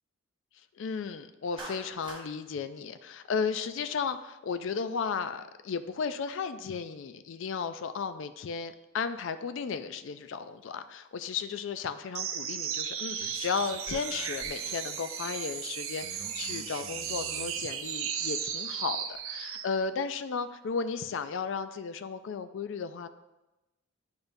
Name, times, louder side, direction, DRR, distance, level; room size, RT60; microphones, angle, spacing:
voice 1, 0.8-23.1, left 5 dB, 60° left, 11 dB, 0.3 m, -34 dB
Clapping, 1.6-2.3, right 2 dB, 20° right, 0.9 m, -42 dB
sound 1, 12.1-19.7, right 8 dB, 70° right, 0.5 m, -35 dB
8.8 x 5.2 x 2.6 m, 1.0 s
head